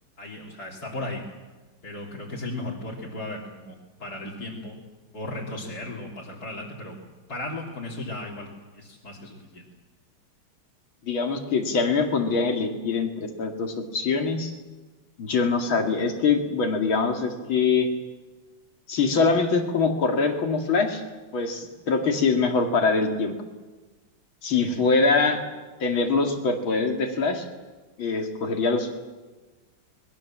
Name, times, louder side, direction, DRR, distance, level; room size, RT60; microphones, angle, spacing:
voice 1, 0.2-1.2 1.8-4.8 5.1-7.0 7.3-8.5 8.7-9.7 24.6-24.8, left 2 dB, 45° left, -5 dB, 3.5 m, -36 dB
voice 2, 11.0-14.5 15.2-17.9 18.9-21.0 21.3-23.3 24.4-25.4 25.8-27.4 28.0-28.9, left 4 dB, 70° left, 4 dB, 3.1 m, -23 dB
25.0 x 21.0 x 7.4 m, 1.3 s
omnidirectional pair, 2.3 m